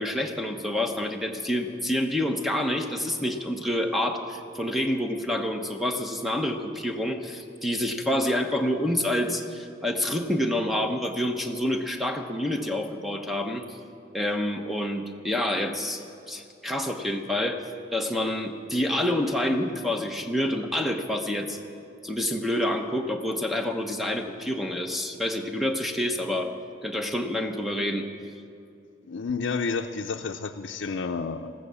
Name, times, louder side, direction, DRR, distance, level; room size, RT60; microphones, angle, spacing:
voice 1, 0.0-13.8 14.1-17.6 17.9-21.6 22.0-26.5 26.8-28.0, left 1 dB, ahead, 4 dB, 0.9 m, -28 dB
voice 2, 29.1-31.5, left 4 dB, 75° left, 4 dB, 0.5 m, -30 dB
14.5 x 14.0 x 6.9 m, 2.5 s
head